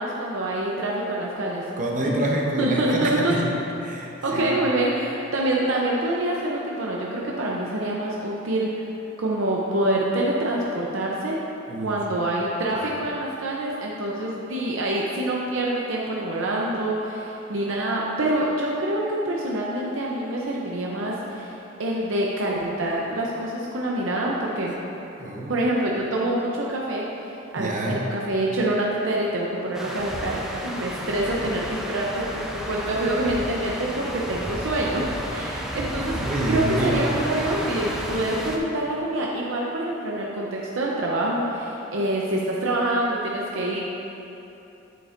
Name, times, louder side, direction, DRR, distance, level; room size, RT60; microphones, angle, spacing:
voice 1, 0.0-1.6 2.1-2.2 2.6-3.3 4.2-8.9 9.2-11.4 11.8-24.7 25.5-27.0 27.5-35.0 35.3-43.8, right 1 dB, 90° right, -3 dB, 0.7 m, -26 dB
voice 2, 1.8-4.6 11.7-12.0 12.8-13.0 25.2-25.5 27.6-28.1 36.1-37.2, right 1 dB, 40° right, -2 dB, 0.7 m, -27 dB
sound 1, 29.7-38.6, equal, 5° right, 0.5 m, -32 dB
7.9 x 7.6 x 2.5 m, 3.0 s
head